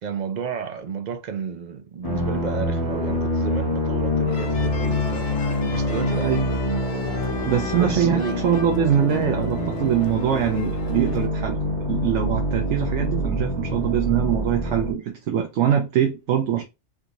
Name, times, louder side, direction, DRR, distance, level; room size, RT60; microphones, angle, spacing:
voice 1, 0.0-6.3 7.8-8.6, right 7 dB, 55° right, 0.5 m, -32 dB
sound 1, 2.0-14.9, left 1 dB, 30° left, 1.1 m, -26 dB
sound 2, 4.3-11.3, left 4 dB, 65° left, 0.8 m, -36 dB
voice 2, 7.5-11.6 11.9-16.6, right 9 dB, 75° right, 0.9 m, -23 dB
3.6 x 2.8 x 2.4 m
omnidirectional pair, 1.2 m